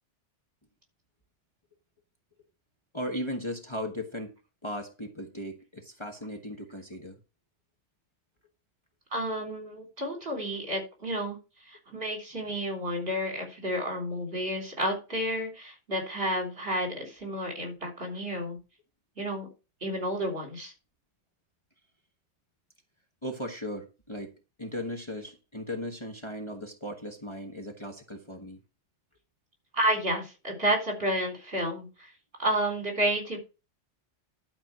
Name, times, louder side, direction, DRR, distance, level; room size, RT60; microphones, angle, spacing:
voice 1, 2.9-4.3 4.6-7.2 23.2-24.3 24.6-28.6, left 1 dB, 25° left, 1.4 m, -37 dB
voice 2, 9.1-11.4 11.7-18.6 19.2-19.5 19.8-20.7 29.7-32.1 32.4-33.4, right 1 dB, 55° right, 4.1 m, -31 dB
12.0 x 4.6 x 6.1 m
omnidirectional pair, 1.2 m